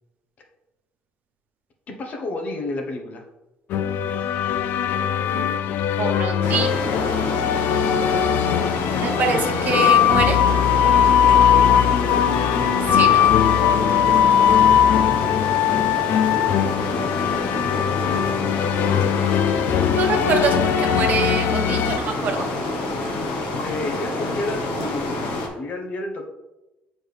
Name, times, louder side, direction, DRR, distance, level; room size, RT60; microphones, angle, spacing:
voice 1, 1.9-3.3 11.7-12.6 14.2-14.8 16.1-16.7 23.6-26.3, left 2 dB, 50° left, 2 dB, 1.1 m, -32 dB
sound 1, 3.7-22.0, left 9 dB, 65° left, 0.4 m, -20 dB
voice 2, 5.3-6.8 9.0-10.4 12.9-13.3 20.0-22.5, right 5 dB, 55° right, 4 dB, 1.1 m, -25 dB
sound 2, 6.4-25.5, left 2 dB, 85° left, 1.4 m, -28 dB
7.6 x 4.3 x 3.4 m, 1.0 s
cardioid pair, 115°, 4 cm